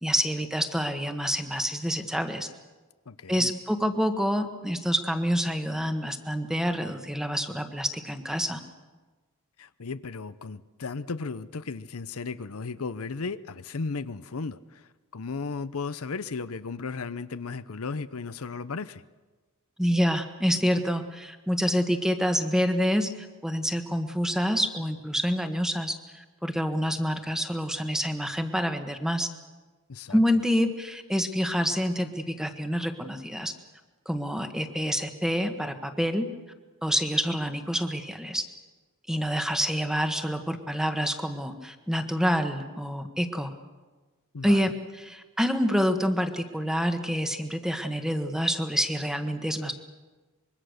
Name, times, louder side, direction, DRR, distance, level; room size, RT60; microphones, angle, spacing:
voice 1, 0.0-2.5 3.3-8.6 19.8-23.1 23.4-29.3 30.1-33.5 34.0-36.3 36.8-38.5 39.1-43.5 44.4-44.7 45.0-49.7, equal, 5° right, 1.5 m, -27 dB
voice 2, 3.1-3.5 9.6-14.8 15.1-19.0 29.9-30.2 44.3-44.7, left 4 dB, 80° left, 0.7 m, -35 dB
25.0 x 22.5 x 6.6 m
head